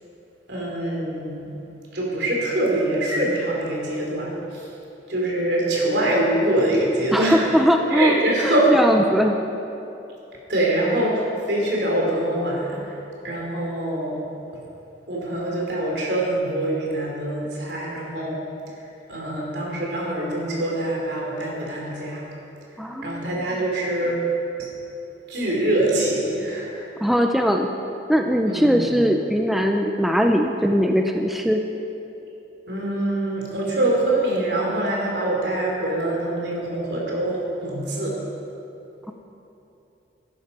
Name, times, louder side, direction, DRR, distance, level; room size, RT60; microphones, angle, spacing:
voice 1, 0.5-1.5 1.9-4.7 5.1-7.4 7.9-8.7 10.5-12.8 13.2-14.2 15.1-18.4 19.1-22.2 23.0-24.2 24.6-24.7 25.3-26.8 28.5-28.9 32.7-38.2, right 1 dB, 70° right, -3 dB, 3.6 m, -24 dB
voice 2, 7.1-9.4 22.8-23.3 27.0-27.7 28.1-31.6, equal, ahead, 3 dB, 0.5 m, -20 dB
14.0 x 11.0 x 5.5 m, 2.9 s
head